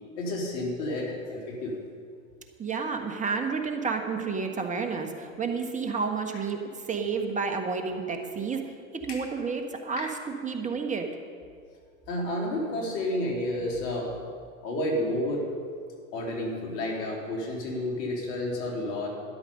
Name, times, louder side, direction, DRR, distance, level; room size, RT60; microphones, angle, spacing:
voice 1, 0.2-1.8 9.1-9.2 10.0-10.1 12.1-14.1 14.6-15.5 16.1-19.1, left 1 dB, 60° left, -1 dB, 3.7 m, -30 dB
voice 2, 2.6-8.6 8.9-11.1, right 5 dB, 20° right, 4 dB, 1.5 m, -30 dB
13.0 x 11.0 x 5.4 m, 2.1 s
hypercardioid pair, 100°, 41 cm